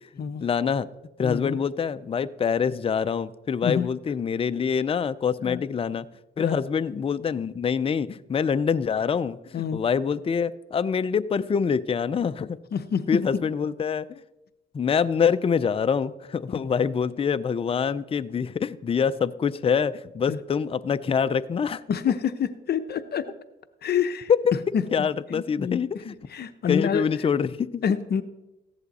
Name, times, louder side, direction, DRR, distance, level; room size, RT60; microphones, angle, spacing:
voice 1, 0.4-0.9 1.2-6.1 6.4-12.6 13.1-14.2 14.7-21.8 24.3-24.4 24.9-25.9 26.7-27.8, left 6 dB, 30° left, 13 dB, 0.5 m, -25 dB
voice 2, 1.2-1.6 3.6-3.9 5.4-5.6 6.4-6.6 9.5-9.8 12.7-13.2 16.5-16.6 20.3-20.4 21.9-23.2 23.8-24.3 24.7-25.8 26.1-27.0 27.8-28.2, left 7 dB, 55° left, 11 dB, 0.8 m, -27 dB
15.5 x 10.5 x 4.2 m, 0.97 s
cardioid pair, 90°, 20 cm